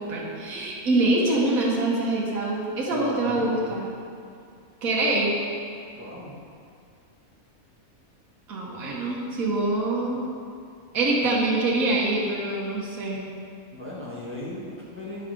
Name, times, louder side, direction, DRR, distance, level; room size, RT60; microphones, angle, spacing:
voice 1, 0.0-3.8 4.8-5.3 8.5-10.2 10.9-13.2, right 2 dB, 75° right, -4 dB, 1.6 m, -25 dB
voice 2, 2.9-3.7 5.9-6.4 13.7-15.3, left 1 dB, 10° right, -7 dB, 1.2 m, -37 dB
10.5 x 4.7 x 3.8 m, 2.3 s
omnidirectional pair, 1.5 m